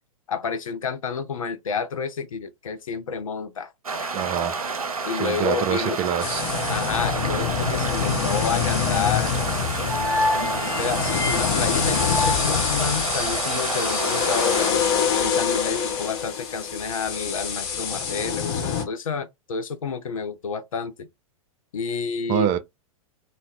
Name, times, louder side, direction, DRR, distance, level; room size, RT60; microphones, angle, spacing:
voice 1, 0.3-4.1 5.0-6.0 6.7-9.3 9.8-14.8 15.2-21.1 21.7-22.5, left 5 dB, 70° left, 0.6 m, -30 dB
sound 1, 3.8-14.7, right 4 dB, 80° right, 0.6 m, -29 dB
voice 2, 4.1-4.7 5.2-6.5 22.3-22.6, right 10 dB, 30° right, 0.4 m, -25 dB
sound 2, 6.2-18.9, left 7 dB, 45° left, 1.0 m, -25 dB
sound 3, 9.3-13.5, left 2 dB, 10° left, 1.2 m, -29 dB
2.3 x 2.1 x 3.5 m
figure-of-eight pair, 105°, 18 cm